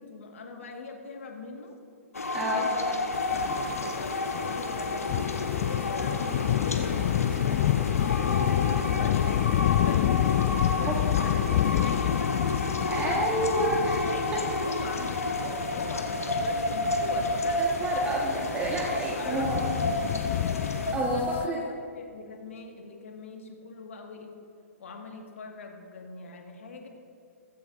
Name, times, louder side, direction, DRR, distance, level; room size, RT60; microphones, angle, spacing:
voice 1, 0.0-1.8 2.5-4.2 4.4-5.2 5.6-7.6 8.0-13.5 14.0-17.7 18.3-18.6 19.1-20.3 20.8-24.3 24.8-26.9, left 4 dB, 60° left, 3 dB, 1.7 m, -42 dB
sound 1, 2.1-20.9, left 2 dB, 80° left, 1.3 m, -31 dB
voice 2, 2.3-2.7 10.8-10.9 12.9-14.4 17.6-19.6 20.9-21.6, right 1 dB, 15° right, -2 dB, 1.5 m, -29 dB
sound 2, 3.1-21.5, left 12 dB, 40° left, 0.3 m, -29 dB
17.0 x 15.5 x 2.6 m, 2.4 s
figure-of-eight pair, 115°, 8 cm